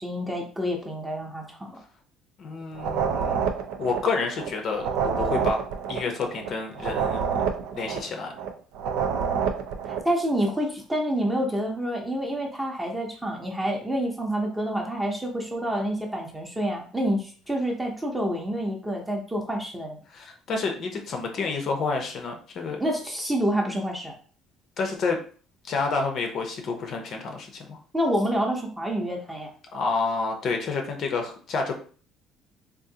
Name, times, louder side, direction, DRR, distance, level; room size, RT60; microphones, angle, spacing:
voice 1, 0.0-1.8 9.8-20.0 22.8-24.1 27.9-29.5, equal, 10° right, 0 dB, 0.7 m, -28 dB
voice 2, 2.4-3.4 3.8-5.6 5.9-7.2 7.7-8.3 20.1-22.8 24.8-25.2 25.6-27.8 29.7-31.8, left 4 dB, 45° left, 4 dB, 0.6 m, -29 dB
sound 1, 2.7-10.1, right 7 dB, 85° right, 0.4 m, -28 dB
3.6 x 2.5 x 2.7 m, 0.41 s
cardioid pair, 155°, 0 cm